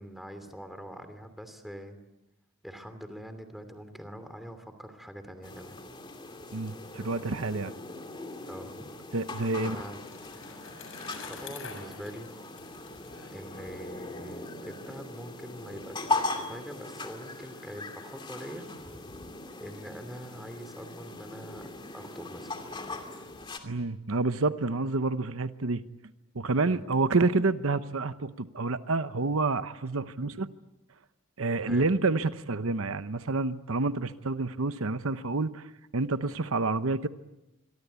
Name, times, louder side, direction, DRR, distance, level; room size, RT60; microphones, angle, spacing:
voice 1, 0.0-2.0 2.6-5.8 8.5-8.9 9.6-10.0 11.2-12.3 13.3-18.7 19.6-21.7 21.9-22.5 26.6-26.8 30.2-30.4 31.7-32.0, equal, ahead, 8 dB, 2.8 m, -44 dB
sound 1, 5.4-23.6, left 2 dB, 25° left, 2.7 m, -39 dB
voice 2, 6.5-7.7 9.1-9.8 23.6-25.8 26.3-30.5 31.4-37.1, right 3 dB, 80° right, 11 dB, 0.9 m, -28 dB
Bicycle, 9.0-14.1, left 5 dB, 65° left, 7.3 m, -47 dB
27.0 x 23.5 x 8.2 m, 0.96 s
head